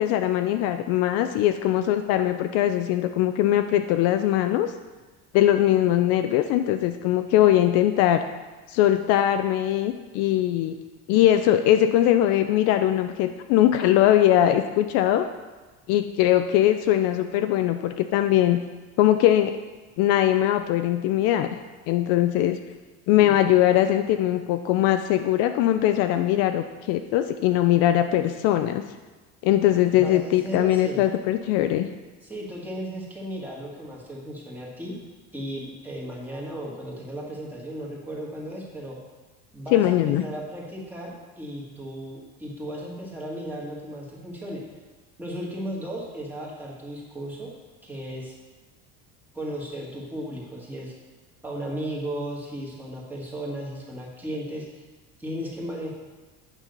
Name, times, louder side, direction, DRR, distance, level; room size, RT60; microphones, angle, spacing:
voice 1, 0.0-4.7 5.3-8.2 8.7-10.8 11.1-15.3 15.9-18.6 19.0-19.5 20.0-21.5 21.9-22.6 23.1-28.8 29.4-31.9 39.7-40.2, left 12 dB, 55° left, 8 dB, 0.5 m, -21 dB
voice 2, 29.9-31.0 32.2-35.0 35.3-39.0 39.5-44.6 45.2-47.5 47.8-48.3 49.3-50.9 51.4-54.8 55.2-55.9, equal, 5° right, -4 dB, 1.7 m, -35 dB
8.9 x 5.5 x 6.6 m, 1.3 s
cardioid pair, 175°, 29 cm